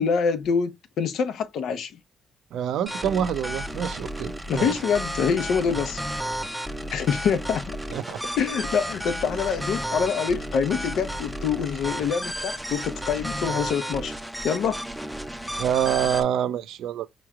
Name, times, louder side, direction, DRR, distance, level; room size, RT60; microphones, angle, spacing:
voice 1, 0.0-1.9 4.5-6.0 6.9-7.8 8.4-14.1 14.4-14.8, left 6 dB, 75° left, 0.7 m, -25 dB
voice 2, 2.5-4.7 7.9-8.2 15.6-17.1, right 9 dB, 80° right, 0.5 m, -26 dB
sound 1, 2.9-16.2, equal, ahead, 0.6 m, -33 dB
4.5 x 3.1 x 2.3 m
cardioid pair, 90°, 0 cm